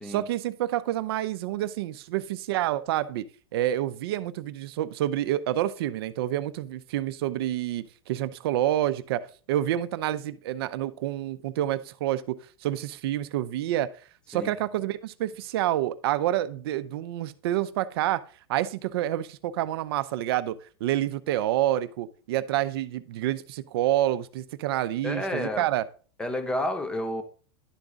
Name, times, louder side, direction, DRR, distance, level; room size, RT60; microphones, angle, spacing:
voice 1, 0.0-3.3 3.5-13.9 14.3-18.2 18.5-25.8, right 13 dB, 65° right, 14 dB, 0.6 m, -28 dB
voice 2, 25.0-25.7 26.2-27.2, left 1 dB, 5° left, 7 dB, 0.8 m, -30 dB
11.0 x 3.9 x 3.6 m, 0.39 s
supercardioid pair, 150°, 14 cm